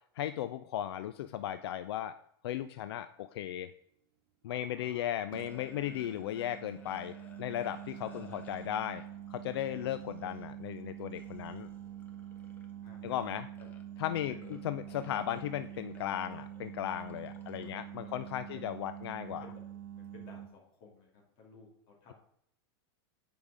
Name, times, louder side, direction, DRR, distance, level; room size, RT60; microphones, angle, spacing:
voice 1, 0.2-2.1 2.4-3.7 4.4-9.0 9.3-11.7 13.0-13.5 14.0-19.5, left 11 dB, 80° left, 12 dB, 0.4 m, -36 dB
sound 1, 2.5-2.7 5.3-20.5, right 10 dB, 60° right, 1.4 m, -46 dB
voice 2, 4.4-5.1 7.9-8.4 12.8-13.3 13.6-13.7 14.0-14.5 17.6-18.1 18.4-18.6 19.2-19.6 19.9-22.1, left 4 dB, 40° left, -2 dB, 2.7 m, -56 dB
sound 2, 5.4-9.2 9.5-10.7 11.2-12.7 13.0-13.2 13.6-14.6 14.9-17.8, left 4 dB, 15° left, 0.7 m, -58 dB
9.5 x 5.2 x 5.0 m, 0.70 s
supercardioid pair, 175°, 13 cm